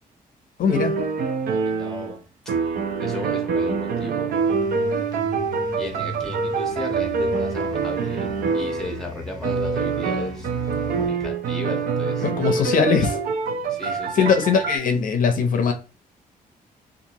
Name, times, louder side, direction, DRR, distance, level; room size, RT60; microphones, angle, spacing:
voice 1, 0.6-0.9 12.2-13.1 13.9-15.7, left 6 dB, 65° left, 0.5 m, -20 dB
sound 1, 0.7-2.2 2.5-9.1 9.4-14.8, right 5 dB, 80° right, 0.5 m, -25 dB
voice 2, 1.6-2.2 3.0-4.3 5.8-10.5 10.9-13.2 13.7-14.4, left 2 dB, 5° left, 0.9 m, -35 dB
sound 2, 4.3-11.1, right 1 dB, 25° right, 0.7 m, -37 dB
2.9 x 2.5 x 2.6 m
cardioid pair, 120°, 15 cm